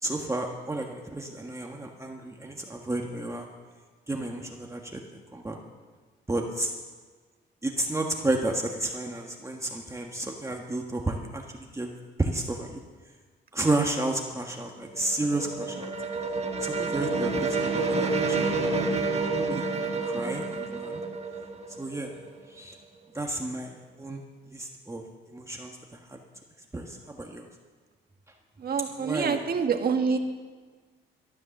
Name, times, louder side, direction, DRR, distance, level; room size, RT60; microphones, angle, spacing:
voice 1, 0.0-3.5 4.1-5.0 5.3-5.6 6.3-6.7 7.6-11.4 11.7-11.9 12.2-12.8 13.5-15.9 16.6-18.5 18.8-19.0 19.3-19.6 20.0-21.0 21.8-22.1 22.5-22.7 23.1-24.2 24.5-25.0 25.3-25.8 26.1-26.2 26.7-27.5 28.9-29.4, right 2 dB, 15° right, 1 dB, 1.4 m, -31 dB
sound 1, 14.6-22.4, right 3 dB, 30° right, 1.5 m, -29 dB
voice 2, 28.6-30.2, right 5 dB, 50° right, 5 dB, 1.6 m, -26 dB
13.0 x 10.5 x 7.1 m, 1.4 s
cardioid pair, 90°, 20 cm